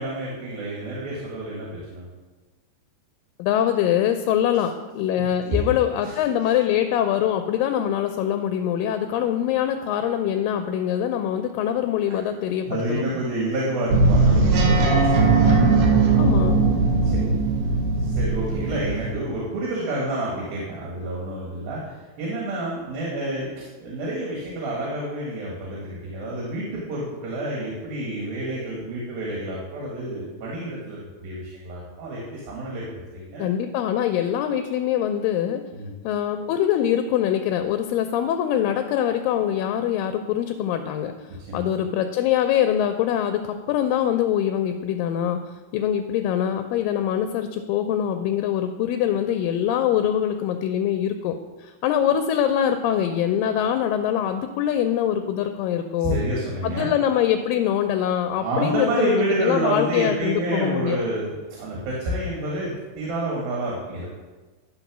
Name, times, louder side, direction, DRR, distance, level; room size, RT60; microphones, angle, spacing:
voice 1, 0.0-2.1 6.0-6.2 12.6-15.6 17.0-17.2 18.0-32.8 33.1-33.5 35.7-35.9 41.5-41.7 56.0-56.9 58.4-64.1, right 1 dB, 85° right, -4 dB, 3.4 m, -28 dB
voice 2, 3.4-13.1 16.2-16.6 33.4-35.6 36.0-41.3 41.5-51.3 51.6-56.2 56.6-61.0, left 10 dB, 80° left, 7 dB, 2.2 m, -23 dB
sound 1, 13.9-19.1, right 3 dB, 65° right, 2.4 m, -19 dB
11.5 x 4.2 x 6.0 m, 1.3 s
omnidirectional pair, 4.1 m